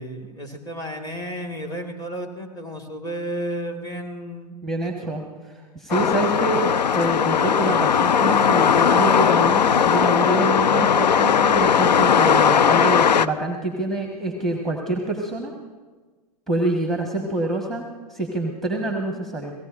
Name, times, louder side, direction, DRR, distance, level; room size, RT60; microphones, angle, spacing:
voice 1, 0.0-4.6 4.8-5.1 6.0-6.1, right 1 dB, 20° left, 4 dB, 1.9 m, -32 dB
voice 2, 4.6-15.5 16.5-19.5, right 2 dB, ahead, 2 dB, 1.4 m, -26 dB
sound 1, 5.9-13.3, left 7 dB, 80° left, 0.5 m, -18 dB
28.5 x 17.5 x 2.6 m, 1.3 s
figure-of-eight pair, 110°, 21 cm